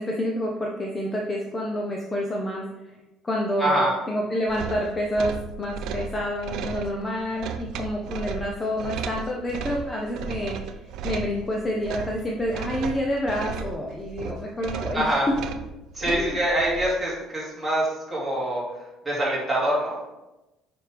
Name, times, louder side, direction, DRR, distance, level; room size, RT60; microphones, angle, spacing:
voice 1, 0.0-2.6 3.2-15.3 16.0-16.4, left 1 dB, 15° left, 0 dB, 0.6 m, -28 dB
voice 2, 3.6-3.9 14.9-15.3 16.0-18.6 19.1-20.0, right 1 dB, 5° right, -7 dB, 2.4 m, -24 dB
sound 1, 4.5-16.9, right 6 dB, 65° right, 0.5 m, -35 dB
7.4 x 5.1 x 3.4 m, 1.0 s
cardioid pair, 155°, 0 cm